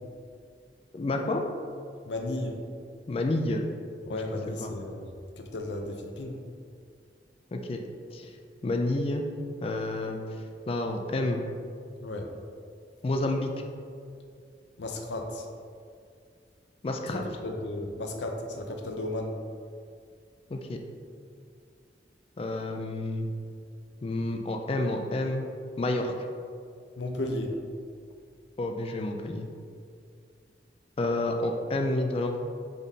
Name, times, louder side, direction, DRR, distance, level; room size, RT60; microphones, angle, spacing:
voice 1, 0.9-1.4 3.1-3.6 4.1-4.2 4.6-4.7 7.5-7.8 8.1-8.3 8.6-9.2 9.6-10.2 10.7-11.5 13.0-13.5 16.8-17.2 20.5-20.8 22.4-23.3 24.0-25.5 25.8-26.1 28.6-29.5 31.0-32.4, left 2 dB, 35° left, 3 dB, 0.3 m, -29 dB
voice 2, 2.1-2.6 4.1-5.1 5.4-6.4 12.0-12.3 14.8-15.4 17.1-19.3 27.0-27.6, left 1 dB, 80° left, 3 dB, 0.5 m, -34 dB
4.0 x 3.7 x 3.6 m, 2.2 s
head